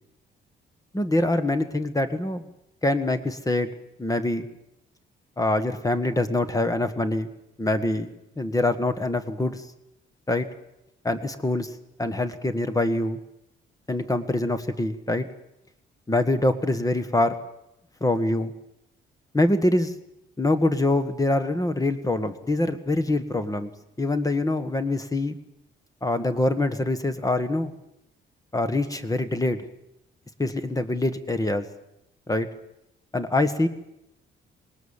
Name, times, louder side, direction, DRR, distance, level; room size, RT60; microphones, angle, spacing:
voice 1, 0.9-2.5 2.8-3.7 4.0-4.4 5.4-7.3 7.6-9.6 10.3-10.5 11.0-11.7 12.0-13.2 13.9-15.3 16.1-17.3 18.0-18.5 19.3-19.9 20.4-23.7 24.0-25.3 26.0-27.7 28.5-29.6 30.4-31.6 32.3-32.5 33.1-33.7, left 2 dB, 15° left, 10 dB, 1.7 m, -24 dB
20.0 x 18.5 x 7.4 m, 0.84 s
cardioid pair, 90°, 20 cm